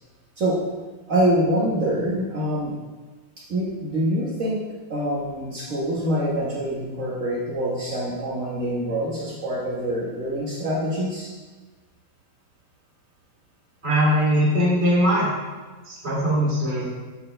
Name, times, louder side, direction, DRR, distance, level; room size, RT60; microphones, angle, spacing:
voice 1, 1.1-2.7 3.5-4.6 4.9-11.3, equal, 75° right, -6 dB, 0.7 m, -25 dB
voice 2, 13.8-15.3 15.9-16.8, equal, 15° right, -8 dB, 2.1 m, -20 dB
13.5 x 4.4 x 3.3 m, 1.3 s
omnidirectional pair, 3.4 m